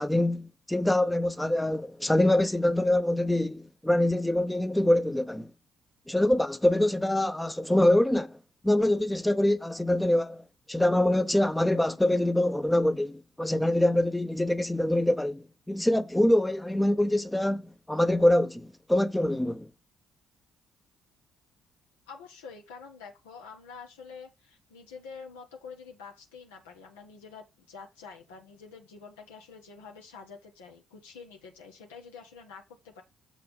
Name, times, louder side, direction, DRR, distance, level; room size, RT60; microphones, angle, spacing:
voice 1, 0.0-5.5 6.1-8.4 8.6-19.7, left 1 dB, 5° left, 0.7 m, -25 dB
voice 2, 22.1-33.0, left 5 dB, 80° left, 1.2 m, -47 dB
7.4 x 4.1 x 5.5 m
figure-of-eight pair, 45°, 0 cm